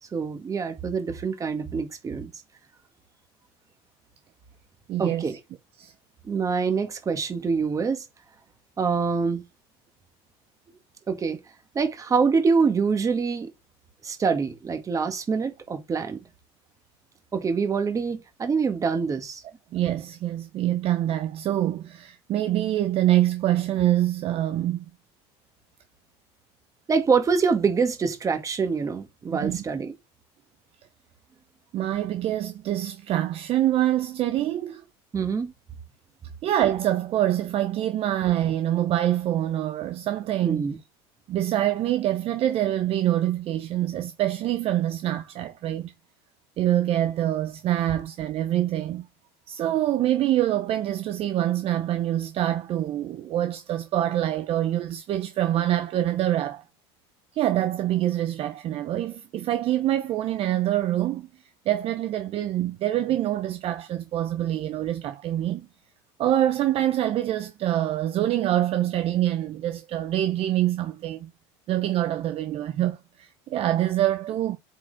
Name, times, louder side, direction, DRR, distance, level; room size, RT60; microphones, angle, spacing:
voice 1, 0.1-2.3 5.0-5.4 6.2-8.1 8.8-9.4 10.7-10.8 11.1-11.4 11.7-13.5 14.0-16.2 17.3-19.4 26.9-29.9 35.1-35.5 40.4-40.8, right 5 dB, 25° right, 2.0 m, -25 dB
voice 2, 4.9-5.3 5.8-5.9 19.7-24.8 29.3-29.6 31.7-34.8 36.4-40.7 41.3-45.9 46.6-49.1 49.5-56.6 57.3-61.3 61.7-65.7 66.2-71.3 71.7-74.6, right 12 dB, 45° right, 0.9 m, -25 dB
8.2 x 4.9 x 3.6 m
supercardioid pair, 120°, 13 cm